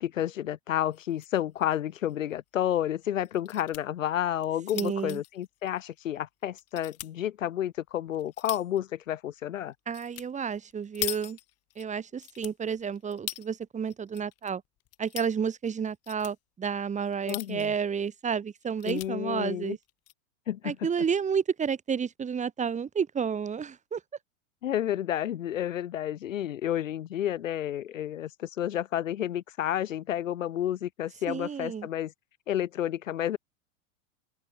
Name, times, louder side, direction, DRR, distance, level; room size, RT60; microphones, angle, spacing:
voice 1, 0.0-9.7 17.3-17.7 18.8-19.8 20.5-20.8 24.6-32.1 32.5-33.4, left 11 dB, 85° left, 0.9 m, -30 dB
sound 1, 0.9-1.4 1.7-1.8 2.1-2.2 3.2-3.8 4.3-6.2 6.6-7.1 7.8-8.8 9.9-10.3 10.6-11.9 12.2-13.5 13.9-14.5 14.8-15.3 15.9-16.4 17.1-17.8 18.3-18.4 18.6-19.1 19.8-20.1, left 16 dB, 40° left, 2.7 m, -40 dB
voice 2, 4.7-5.2 9.9-11.4 11.8-14.6 15.0-19.8 20.6-24.0 31.3-31.9, right 6 dB, 20° right, 1.8 m, -31 dB
open air
hypercardioid pair, 100°, 38 cm